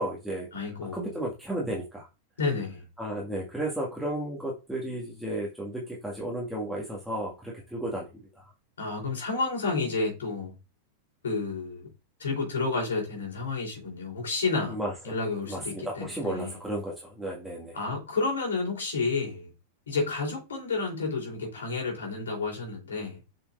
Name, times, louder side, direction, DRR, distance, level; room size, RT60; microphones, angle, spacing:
voice 1, 0.0-0.5 0.9-2.1 3.0-8.5 14.7-14.9 15.5-17.8, right 1 dB, ahead, 1.9 m, -33 dB
voice 2, 0.5-1.1 2.4-2.8 8.8-10.5 11.2-11.9 12.2-14.8 15.0-16.5 17.7-19.5 19.9-23.2, left 3 dB, 70° left, 3.4 m, -30 dB
6.9 x 6.0 x 2.5 m
figure-of-eight pair, 90°, 0 cm